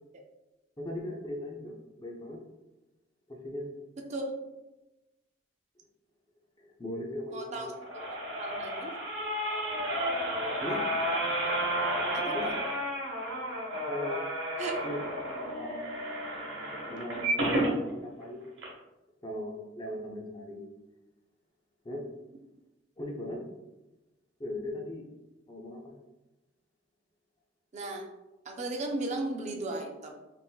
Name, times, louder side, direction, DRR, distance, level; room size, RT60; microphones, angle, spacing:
voice 1, 0.8-2.4 3.3-3.7 6.6-7.6 8.5-8.7 10.6-10.8 12.3-12.5 13.9-14.3 14.8-15.8 16.9-18.4 19.2-20.6 21.8-22.1 23.0-23.4 24.4-25.1 25.4-25.9, left 1 dB, 20° left, 0 dB, 0.5 m, -38 dB
voice 2, 7.3-8.1 8.4-9.0 10.7-10.8 12.1-12.4 14.6-14.8 27.7-28.1 28.5-30.1, right 2 dB, 35° right, 2 dB, 0.3 m, -35 dB
sound 1, 7.6-17.7 18.2-18.3 18.6-18.7, right 1 dB, 80° right, 0.8 m, -32 dB
3.5 x 2.6 x 2.2 m, 1.0 s
head